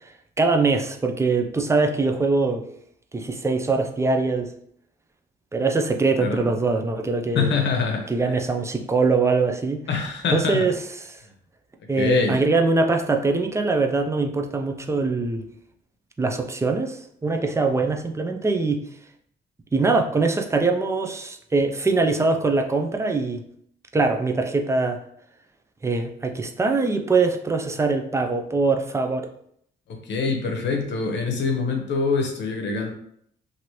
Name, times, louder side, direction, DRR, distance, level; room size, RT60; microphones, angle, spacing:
voice 1, 0.4-2.6 3.1-4.5 5.5-7.5 8.1-9.8 10.3-11.1 11.9-15.5 16.2-18.8 19.7-23.4 23.9-25.0 25.8-29.3, right 3 dB, 15° right, 4 dB, 0.4 m, -22 dB
voice 2, 7.3-8.0 9.9-10.6 12.0-12.4 30.1-32.9, left 4 dB, 65° left, 3 dB, 0.8 m, -24 dB
2.8 x 2.6 x 3.0 m, 0.68 s
cardioid pair, 90°, 20 cm